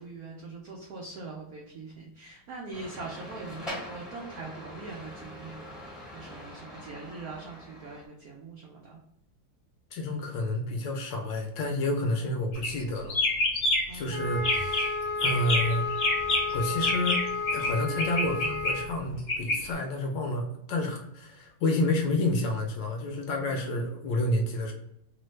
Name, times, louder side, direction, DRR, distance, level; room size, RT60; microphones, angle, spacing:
voice 1, 0.0-5.8 6.1-9.0 12.2-12.3 13.9-14.3 23.4-23.5, right 3 dB, 85° right, -2 dB, 0.8 m, -42 dB
sound 1, 2.7-8.1, left 1 dB, ahead, 0.5 m, -43 dB
voice 2, 9.9-13.2 13.9-15.9 16.5-17.2 17.5-24.7, left 1 dB, 75° left, 2 dB, 1.1 m, -29 dB
sound 2, 12.5-12.8 13.1-14.0 14.4-14.9 15.2-17.7 18.0-19.6, left 2 dB, 55° left, 0.9 m, -27 dB
Wind instrument woodwind instrument, 14.1-18.9, left 4 dB, 70° right, 1.2 m, -32 dB
3.2 x 2.1 x 3.1 m, 0.79 s
omnidirectional pair, 2.2 m